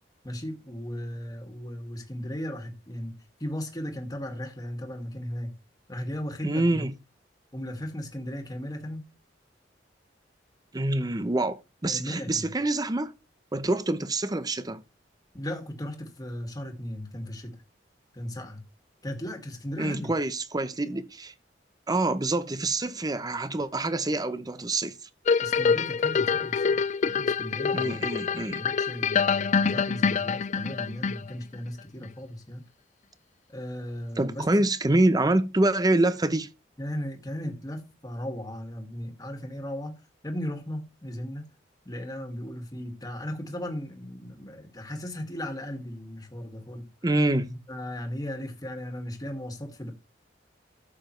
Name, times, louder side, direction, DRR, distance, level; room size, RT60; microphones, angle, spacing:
voice 1, 0.2-5.5 5.9-6.9 7.5-9.0 11.8-12.5 15.3-17.6 18.1-18.6 19.0-20.1 25.4-26.8 27.0-32.6 33.5-34.7 36.8-40.0 40.2-41.5 41.9-46.9 47.5-49.9, equal, 20° left, 2.0 m, -36 dB
voice 2, 6.4-6.9 10.7-13.1 13.5-14.8 19.8-21.3 21.9-24.9 27.7-28.6 34.2-36.5 47.0-47.5, right 2 dB, 20° right, 0.7 m, -26 dB
sound 1, 25.3-31.5 32.0-32.1, left 5 dB, 40° left, 0.4 m, -26 dB
13.5 x 6.9 x 3.2 m
head